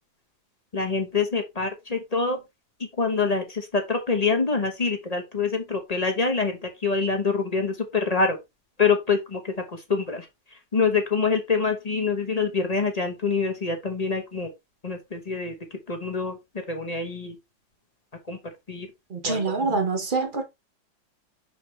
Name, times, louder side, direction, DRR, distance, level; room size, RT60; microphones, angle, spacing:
voice 1, 0.7-2.4 3.0-8.4 8.8-10.3 10.7-14.5 14.8-15.5 15.9-16.4 16.7-17.4 18.3-18.4 18.7-18.9 19.2-19.5, left 4 dB, 25° left, 0.9 m, -25 dB
voice 2, 19.1-20.4, right 4 dB, 30° right, 1.3 m, -25 dB
5.9 x 5.1 x 3.2 m
omnidirectional pair, 2.0 m